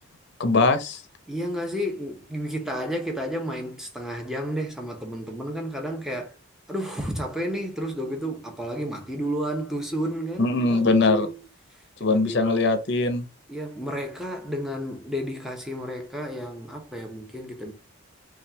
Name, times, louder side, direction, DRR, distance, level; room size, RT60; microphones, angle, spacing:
voice 1, 0.4-1.0 10.4-11.3 12.0-13.2, left 3 dB, 55° left, 0.6 m, -21 dB
voice 2, 1.3-6.3 6.7-11.4 12.0-12.7 13.5-17.7, equal, ahead, 0.7 m, -31 dB
4.3 x 2.4 x 3.4 m
head